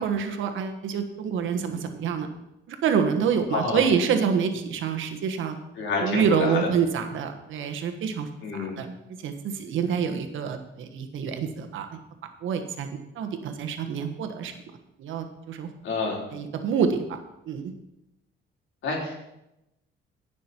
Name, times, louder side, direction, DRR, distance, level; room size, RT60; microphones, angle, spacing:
voice 1, 0.0-2.3 2.7-5.6 6.0-8.9 9.2-11.9 12.4-12.9 13.1-14.5 15.0-15.7 16.3-17.2 17.5-17.7, right 6 dB, 80° right, 6 dB, 1.4 m, -27 dB
voice 2, 3.5-3.8 5.8-6.7 8.4-8.8 15.8-16.2 18.8-19.1, left 3 dB, 75° left, -2 dB, 4.0 m, -28 dB
15.5 x 6.3 x 4.5 m, 0.88 s
cardioid pair, 90°, 20 cm